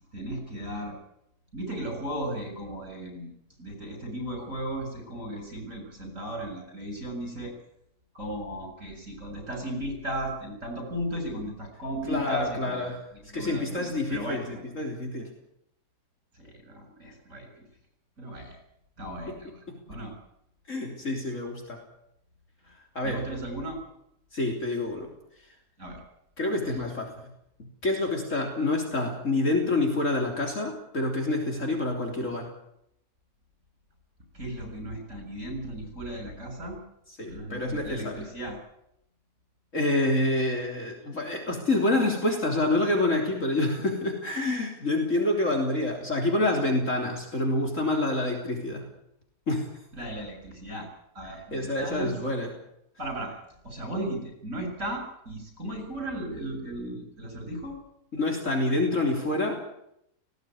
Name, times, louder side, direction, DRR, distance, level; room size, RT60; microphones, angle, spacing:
voice 1, 0.1-0.9 1.5-3.3 3.6-7.5 8.1-12.8 13.3-14.6 16.4-17.6 18.2-18.6 19.0-19.6 19.9-20.1 23.0-23.8 25.8-26.0 34.3-36.8 37.3-38.6 49.9-50.9 51.1-52.1 53.0-53.3 53.6-57.8, right 1 dB, 55° right, 4 dB, 7.9 m, -35 dB
voice 2, 12.1-13.0 13.3-15.3 19.3-19.4 19.7-19.8 20.7-21.8 23.0-23.2 24.3-25.1 26.4-27.1 27.8-32.5 37.1-38.2 39.7-48.9 49.5-49.7 51.3-52.5 58.1-59.7, left 2 dB, 55° left, 1 dB, 3.8 m, -27 dB
18.5 x 17.5 x 9.5 m, 0.78 s
omnidirectional pair, 1.6 m